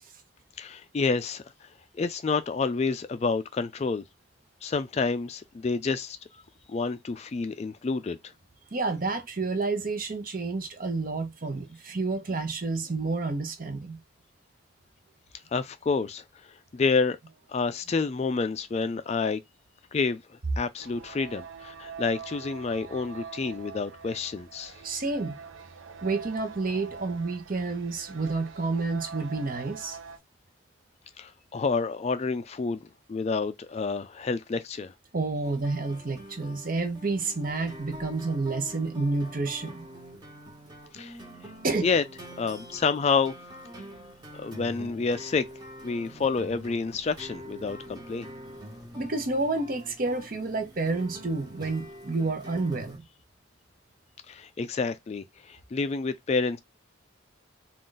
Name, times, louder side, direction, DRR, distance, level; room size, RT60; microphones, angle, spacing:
voice 1, 0.6-1.7 1.9-4.0 4.6-6.2 6.7-8.3 15.5-17.2 17.5-19.4 19.9-24.8 31.2-34.9 40.9-41.2 41.8-42.0 42.4-43.4 44.3-45.5 45.8-48.3 54.3-56.6, left 4 dB, 35° left, 0.3 m, -29 dB
voice 2, 8.7-14.0 24.8-25.4 26.0-30.0 35.1-39.8 41.6-41.9 49.0-53.0, right 3 dB, 45° right, 0.7 m, -29 dB
sound 1, 20.8-30.2, right 5 dB, 75° right, 0.5 m, -44 dB
sound 2, 35.4-53.0, equal, 20° right, 1.1 m, -45 dB
3.8 x 2.4 x 3.8 m
head